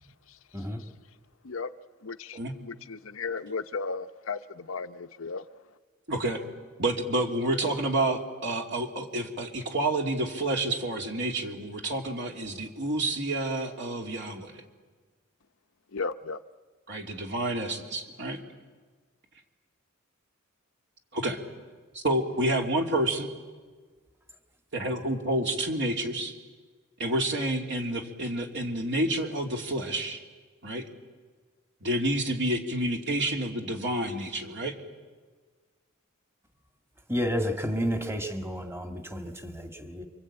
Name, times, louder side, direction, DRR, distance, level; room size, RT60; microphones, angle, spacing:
voice 1, 2.0-5.4 15.9-16.4, left 4 dB, 70° left, 9 dB, 0.8 m, -35 dB
voice 2, 6.1-6.4 6.8-14.6 16.9-18.4 21.1-21.4 21.9-23.3 24.7-26.3 27.0-30.2 30.6-30.9 31.8-34.7, right 1 dB, 60° right, 2 dB, 3.0 m, -29 dB
voice 3, 37.1-40.1, equal, 10° right, 5 dB, 1.8 m, -31 dB
28.0 x 24.5 x 8.9 m, 1.4 s
head